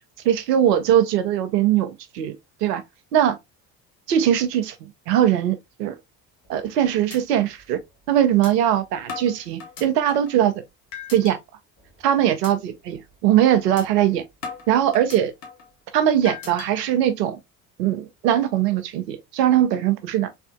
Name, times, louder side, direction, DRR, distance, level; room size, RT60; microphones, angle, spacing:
voice 1, 0.2-2.3 2.6-2.8 3.1-3.4 4.1-4.8 5.1-5.9 6.5-7.8 8.1-10.6 11.1-11.4 12.0-14.2 14.7-15.3 15.9-17.4 17.8-20.3, right 11 dB, 75° right, 0.8 m, -20 dB
sound 1, 6.4-6.7 7.1-7.2 7.6-7.7 8.4-8.5 9.1-10.4 10.9-11.4 11.8-12.0 12.4-12.5 12.9-13.1 13.8-13.9 14.4-15.7 16.3-16.7, left 5 dB, 75° left, 1.2 m, -37 dB
3.5 x 3.3 x 2.2 m
figure-of-eight pair, 50°, 49 cm